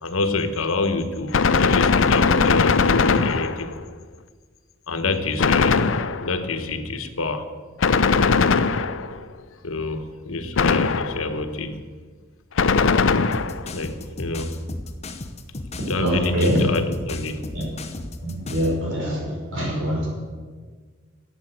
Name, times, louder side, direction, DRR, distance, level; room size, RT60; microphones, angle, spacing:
voice 1, 0.0-3.7 4.9-5.9 6.2-7.5 9.6-11.8 13.7-14.8 15.9-17.5, left 3 dB, 90° left, 8 dB, 1.2 m, -27 dB
Gunshot gunfire, 1.3-3.8 5.4-6.4 7.8-9.2 10.6-11.4 12.6-13.7, left 5 dB, 70° left, 0.5 m, -19 dB
sound 1, 13.3-18.8, left 2 dB, 30° left, 0.9 m, -35 dB
voice 2, 16.0-16.7 17.5-17.6 18.2-19.2 19.5-20.1, equal, 70° right, -2 dB, 4.7 m, -23 dB
12.0 x 8.7 x 7.9 m, 1.5 s
head